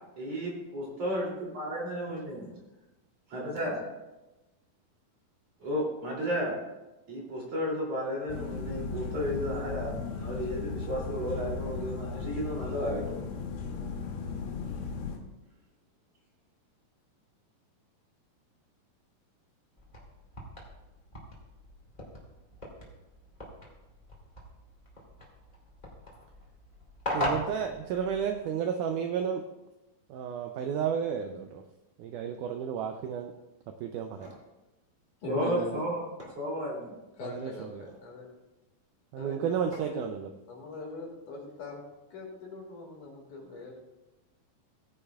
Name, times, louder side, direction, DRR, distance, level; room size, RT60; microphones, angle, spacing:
voice 1, 0.2-1.2 1.6-2.5 3.3-3.8 5.6-6.5 7.1-13.2 35.3-36.0 36.4-36.9, equal, 45° right, -3 dB, 3.8 m, -33 dB
sound 1, 8.3-15.2, left 4 dB, 80° left, 3.2 m, -36 dB
sound 2, 19.8-28.5, left 1 dB, 15° left, 1.5 m, -39 dB
voice 2, 27.1-29.4 30.1-31.6 32.0-33.3 33.8-34.3 37.2-37.7 39.1-40.3, right 7 dB, 85° right, 6 dB, 1.8 m, -32 dB
sound 3, 34.1-34.5 35.7-35.8 36.2-37.0 37.6-38.1 39.7-40.1, equal, 20° right, 2.0 m, -50 dB
voice 3, 35.2-35.8 37.2-38.3 39.2-40.1 40.5-41.8 42.1-43.7, left 2 dB, 60° left, -1 dB, 3.3 m, -41 dB
17.5 x 10.0 x 2.4 m, 1.0 s
omnidirectional pair, 4.3 m